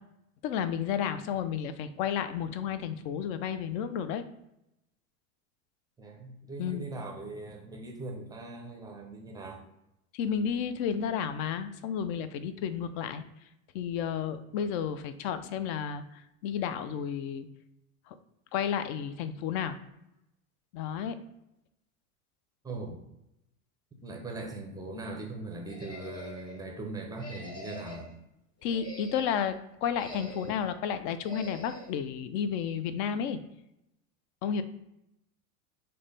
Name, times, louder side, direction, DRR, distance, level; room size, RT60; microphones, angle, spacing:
voice 1, 0.4-4.2 6.6-6.8 10.1-13.2 13.7-17.5 18.1-18.2 18.5-19.8 20.7-21.2 28.6-33.4 34.4-34.6, left 8 dB, 50° left, 11 dB, 0.4 m, -32 dB
voice 2, 6.0-9.6 22.6-23.0 24.0-28.1, right 2 dB, 10° right, 2 dB, 0.5 m, -40 dB
sound 1, 25.7-26.6 27.2-28.1 28.6-29.5 29.9-30.7 31.2-31.9, equal, 10° left, 1.0 m, -44 dB
3.2 x 2.2 x 3.9 m, 0.85 s
supercardioid pair, 110°, 42 cm